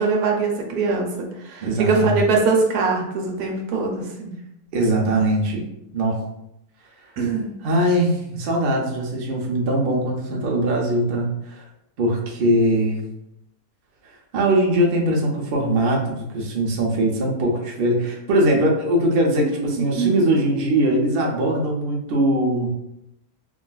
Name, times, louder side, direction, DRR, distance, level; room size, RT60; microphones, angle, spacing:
voice 1, 0.0-4.3 7.2-7.5 19.4-19.7 20.0-20.2, right 4 dB, 85° right, 1 dB, 1.1 m, -22 dB
voice 2, 1.6-2.2 4.7-5.6 5.9-6.2 7.6-11.6 12.0-13.0 14.3-22.7, right 1 dB, 55° right, -1 dB, 0.6 m, -21 dB
3.5 x 2.3 x 2.3 m, 0.83 s
omnidirectional pair, 1.6 m